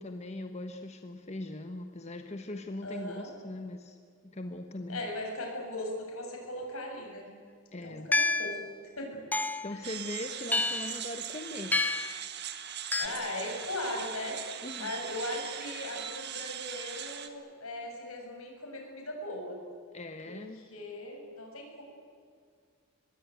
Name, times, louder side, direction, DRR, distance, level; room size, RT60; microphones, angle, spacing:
voice 1, 0.0-4.0 4.2-5.0 7.7-8.1 9.6-11.9 14.6-14.9 19.9-20.6, left 1 dB, 30° left, 5 dB, 1.2 m, -40 dB
voice 2, 2.8-3.3 4.9-7.3 7.8-8.6 8.9-9.2 9.7-9.9 13.0-14.4 14.8-19.6 20.2-21.8, left 1 dB, 75° left, 1 dB, 7.3 m, -38 dB
sound 1, 8.1-8.6 9.3-9.7 10.5-11.0 11.7-12.2 12.9-13.1, left 3 dB, 10° left, 0.7 m, -28 dB
sound 2, 9.8-17.3, right 9 dB, 50° right, 1.8 m, -40 dB
24.5 x 21.0 x 9.3 m, 2.2 s
head